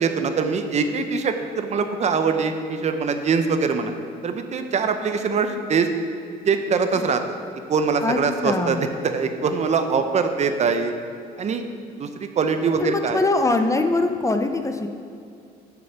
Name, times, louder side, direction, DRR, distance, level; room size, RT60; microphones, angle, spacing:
voice 1, 0.0-3.9 4.2-5.9 6.5-7.2 7.7-8.8 9.0-10.9 11.4-11.6 12.0-13.2, right 5 dB, 40° right, 7 dB, 0.7 m, -23 dB
voice 2, 8.0-8.8 12.8-14.9, left 2 dB, 20° left, 6 dB, 0.6 m, -23 dB
7.1 x 6.5 x 6.8 m, 2.4 s
cardioid pair, 110°, 17 cm